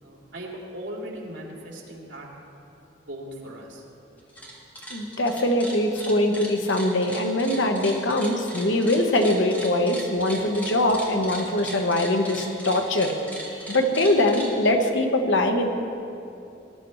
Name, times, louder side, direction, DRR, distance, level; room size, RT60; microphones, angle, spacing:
voice 1, 0.0-2.3 3.1-3.8, right 1 dB, 80° right, -3 dB, 2.7 m, -38 dB
sound 1, 4.2-4.5 4.8-14.5, right 1 dB, 10° left, 2.2 m, -37 dB
voice 2, 4.9-13.1 13.5-15.7, left 1 dB, 85° left, 4 dB, 1.2 m, -22 dB
20.0 x 11.5 x 3.2 m, 2.7 s
head